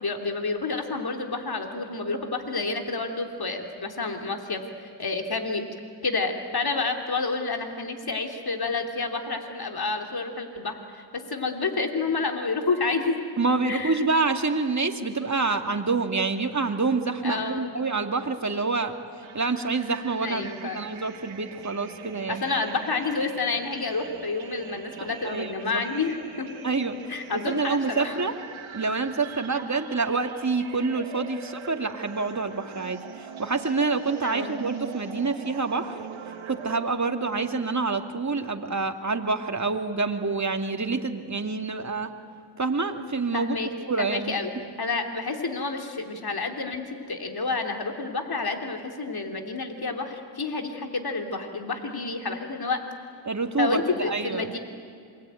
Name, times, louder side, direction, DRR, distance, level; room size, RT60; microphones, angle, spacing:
voice 1, 0.0-5.6 6.0-13.2 13.7-14.1 17.2-17.7 20.2-20.8 22.3-26.5 27.1-28.3 34.2-34.6 43.3-43.7 44.0-44.5 44.8-52.8 53.6-54.6, left 3 dB, 50° left, 4 dB, 3.3 m, -29 dB
voice 2, 13.4-18.9 19.3-22.4 25.0-25.8 26.6-27.0 27.5-28.3 28.7-36.0 36.5-42.1 42.6-43.6 43.9-44.3 53.3-54.5, right 4 dB, 35° right, 6 dB, 2.4 m, -27 dB
sound 1, 19.2-36.8, right 6 dB, 90° right, 1.9 m, -42 dB
27.5 x 22.5 x 9.3 m, 2.4 s
cardioid pair, 45°, 46 cm